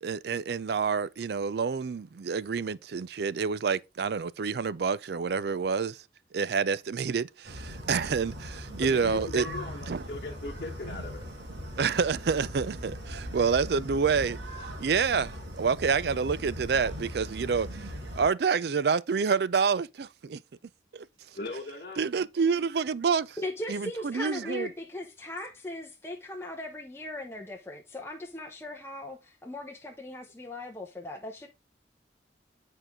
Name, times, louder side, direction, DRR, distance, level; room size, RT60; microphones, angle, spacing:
voice 1, 0.0-6.0 6.3-9.5 9.9-10.1 11.8-14.4 14.8-20.4 20.9-21.0 22.0-23.4 23.7-24.7, right 5 dB, 60° right, 0.4 m, -28 dB
sound 1, 7.4-18.3, equal, 80° right, 2.4 m, -40 dB
voice 2, 8.8-11.2 21.3-22.0, left 2 dB, 50° left, 1.2 m, -39 dB
voice 3, 23.4-31.5, left 1 dB, 15° left, 0.9 m, -38 dB
9.0 x 4.6 x 3.6 m
head